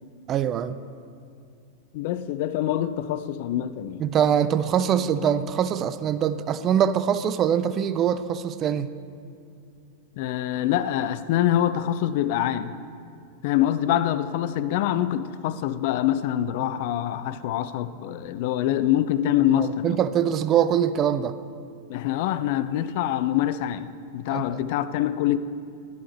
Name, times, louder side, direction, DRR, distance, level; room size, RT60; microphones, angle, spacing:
voice 1, 0.3-0.8 4.0-8.9 19.6-21.4 24.3-24.6, right 9 dB, 30° right, 0.3 m, -23 dB
voice 2, 1.9-4.0 10.2-12.7 13.4-20.0 21.9-25.4, left 12 dB, 50° left, 0.3 m, -25 dB
12.0 x 10.5 x 3.2 m
figure-of-eight pair, 90°, 0 cm